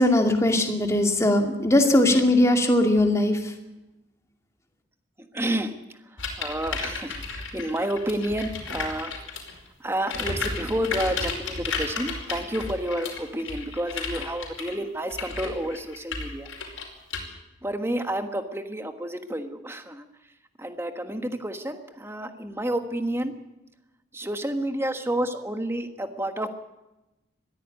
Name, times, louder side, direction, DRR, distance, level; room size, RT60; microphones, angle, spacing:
voice 1, 0.0-3.5, left 1 dB, 15° left, 4 dB, 2.4 m, -20 dB
voice 2, 1.4-2.0 5.3-5.7 6.1-9.1 9.8-16.5 17.6-20.1 20.6-23.3 24.1-26.5, right 1 dB, 15° right, 7 dB, 1.4 m, -30 dB
sound 1, 6.2-9.6 10.0-17.2, left 4 dB, 90° left, 5.1 m, -33 dB
21.5 x 14.5 x 9.2 m, 0.99 s
head